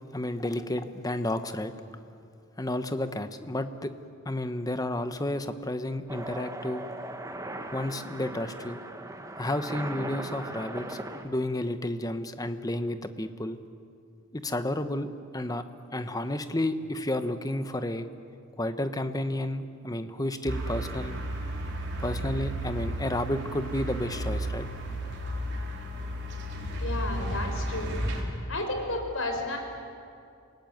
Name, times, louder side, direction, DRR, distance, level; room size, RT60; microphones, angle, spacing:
voice 1, 0.1-1.7 2.6-3.9 4.2-6.8 7.7-8.8 9.4-11.0 11.2-13.6 14.3-15.1 15.3-15.6 15.9-18.1 18.6-21.1 22.0-24.7, left 1 dB, 20° left, 9 dB, 1.0 m, -31 dB
sound 1, 6.1-11.3, right 1 dB, 15° right, 1.3 m, -38 dB
sound 2, 20.5-28.2, right 1 dB, 55° right, 3.9 m, -33 dB
voice 2, 26.8-28.0 28.5-29.6, left 2 dB, 70° left, 3 dB, 5.1 m, -32 dB
27.5 x 18.5 x 9.3 m, 2.4 s
head